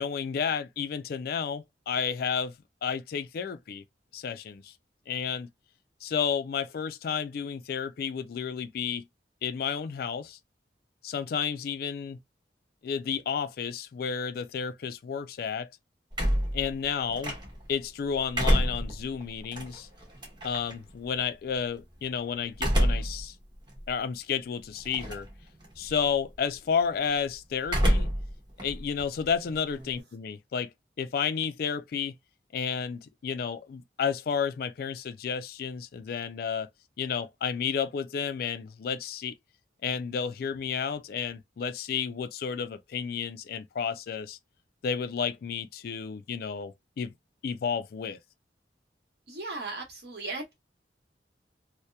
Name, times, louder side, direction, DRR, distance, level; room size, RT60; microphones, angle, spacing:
voice 1, 0.0-2.5 2.8-3.8 4.1-4.7 5.1-5.5 6.0-9.1 9.4-10.4 11.0-12.2 12.8-15.7 16.5-17.4 17.7-19.9 20.4-23.3 23.9-25.3 25.8-28.1 28.6-30.7 31.0-32.1 32.5-36.7 37.0-39.3 39.8-44.4 44.8-47.1 47.4-48.2, left 6 dB, 55° left, 0.3 m, -31 dB
sound 1, 16.1-17.7 18.1-20.7 22.5-23.2 23.7-23.8 24.9-25.3 25.6-26.1 27.6-28.3 28.6-30.0, equal, 25° right, 0.9 m, -27 dB
voice 2, 49.3-50.5, right 3 dB, 60° right, 1.1 m, -37 dB
2.8 x 2.1 x 2.2 m
head